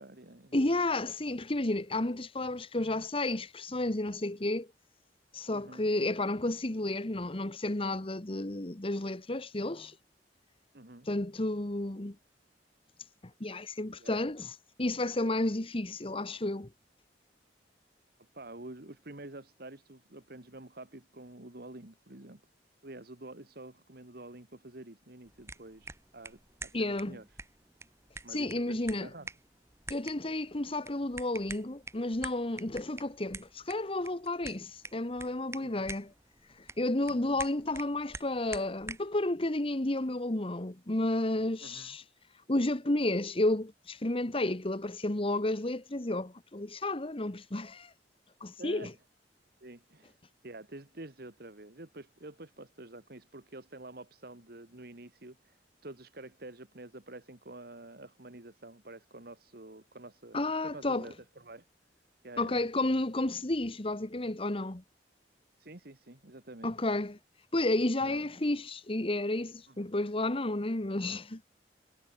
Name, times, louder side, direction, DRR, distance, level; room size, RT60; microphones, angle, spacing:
voice 1, 0.0-0.6 5.5-5.9 10.7-11.1 14.0-14.2 18.3-22.4 22.8-27.4 28.2-29.3 35.6-36.0 37.1-37.4 41.6-42.0 48.6-48.9 49.6-50.2 50.4-61.7 62.2-62.7 65.6-66.7 68.0-68.3 69.7-69.8, right 2 dB, 60° right, 2.1 m, -48 dB
voice 2, 0.5-4.7 5.3-9.9 11.1-12.1 13.4-16.7 26.7-27.2 28.3-29.1 29.9-36.1 36.6-42.0 42.5-47.9 48.4-48.9 60.3-61.1 62.4-64.8 66.6-67.2 67.5-71.4, left 2 dB, 30° left, 1.3 m, -32 dB
sound 1, 25.3-39.1, right 3 dB, 15° right, 1.4 m, -47 dB
head